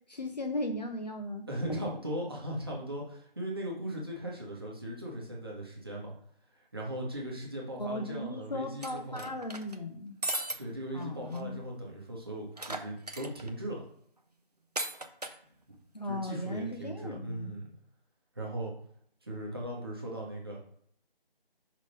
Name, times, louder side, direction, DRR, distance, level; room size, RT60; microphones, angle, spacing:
voice 1, 0.1-1.9 7.8-10.1 10.9-11.6 15.9-17.5, left 1 dB, 45° left, 4 dB, 0.8 m, -37 dB
voice 2, 1.5-6.1 6.5-9.3 10.6-13.8 15.7-15.8 16.1-17.7 18.3-18.7 19.2-20.6, right 1 dB, 25° right, -3 dB, 1.1 m, -38 dB
sound 1, 8.8-9.8 10.2-10.6 11.0-11.1 11.3-11.4 12.6-13.5 14.8-15.4, right 1 dB, 40° right, 0.6 m, -36 dB
5.6 x 3.5 x 5.1 m, 0.65 s
figure-of-eight pair, 170°, 30 cm